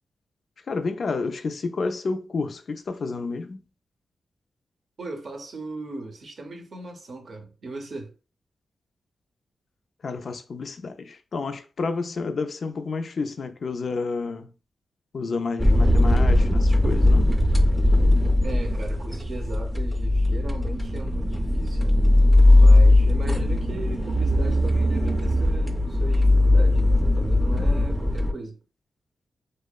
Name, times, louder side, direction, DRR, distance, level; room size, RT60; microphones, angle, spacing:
voice 1, 0.7-3.6 10.0-14.5 15.1-17.3, left 4 dB, 60° left, 0.3 m, -30 dB
voice 2, 5.0-8.1 18.4-22.1 22.5-28.6, right 2 dB, 60° right, 0.6 m, -38 dB
sound 1, 15.6-28.3, left 1 dB, 5° right, 0.5 m, -19 dB
2.7 x 2.0 x 2.2 m
cardioid pair, 70°, 0 cm